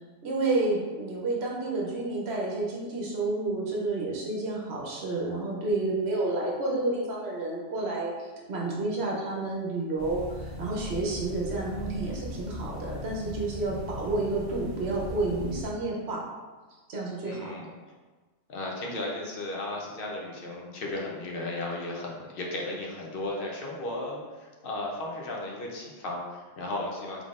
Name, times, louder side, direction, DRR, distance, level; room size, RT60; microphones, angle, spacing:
voice 1, 0.2-16.2 16.9-17.6, right 2 dB, 65° right, -3 dB, 0.9 m, -30 dB
sound 1, 10.0-15.7, left 1 dB, ahead, 0.9 m, -39 dB
voice 2, 17.3-17.7 18.5-27.2, left 2 dB, 55° left, -1 dB, 0.8 m, -35 dB
3.6 x 3.4 x 2.4 m, 1.3 s
omnidirectional pair, 1.2 m